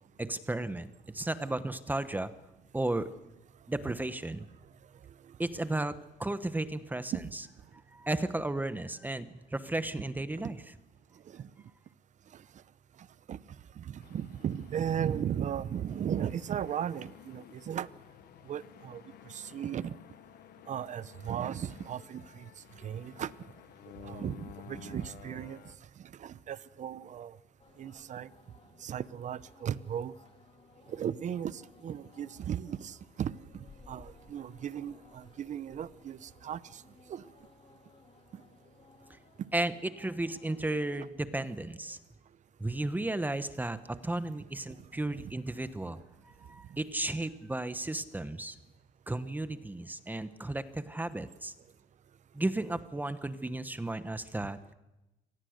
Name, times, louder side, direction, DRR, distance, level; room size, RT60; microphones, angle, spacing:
voice 1, 0.2-2.3 2.7-3.1 3.7-4.5 5.4-7.1 7.9-10.6 39.1-39.2 39.5-42.0 42.6-46.0 46.4-48.6 49.1-51.5 52.3-54.7, right 2 dB, 10° right, 12 dB, 1.0 m, -34 dB
voice 2, 13.8-17.9 18.5-19.0 19.3-20.0 20.7-22.5 22.8-23.3 24.0-25.6 26.0-27.4 27.8-28.3 28.8-30.1 30.9-36.8 37.1-37.2 38.3-38.4 45.2-45.3, right 9 dB, 45° right, 17 dB, 0.8 m, -36 dB
sound 1, 14.0-25.8, left 11 dB, 65° left, 1.0 m, -53 dB
sound 2, 27.6-41.1, left 4 dB, 35° left, 3.1 m, -60 dB
24.5 x 18.5 x 6.6 m, 0.98 s
cardioid pair, 110°, 17 cm